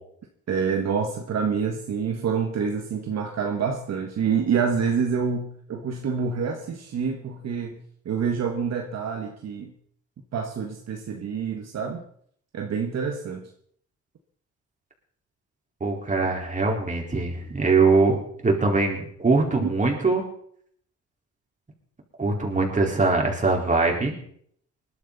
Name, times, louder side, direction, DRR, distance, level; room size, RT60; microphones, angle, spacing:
voice 1, 0.5-7.8 8.0-9.7 10.3-12.0 12.5-13.5 19.6-19.7, right 6 dB, 60° right, 3 dB, 1.7 m, -27 dB
voice 2, 15.8-20.3 22.2-24.1, right 3 dB, 25° right, 0 dB, 4.5 m, -22 dB
20.5 x 12.0 x 4.2 m, 0.64 s
cardioid pair, 90°, 30 cm